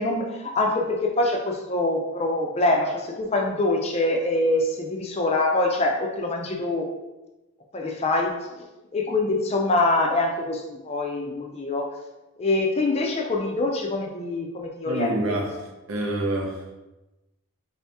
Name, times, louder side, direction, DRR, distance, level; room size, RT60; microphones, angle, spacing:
voice 1, 0.0-6.9 7.7-8.7 8.9-11.9 12.4-15.4, left 2 dB, 25° left, 1 dB, 0.4 m, -24 dB
voice 2, 14.8-16.8, right 1 dB, 65° right, 1 dB, 0.7 m, -28 dB
4.0 x 2.8 x 3.4 m, 1.0 s
head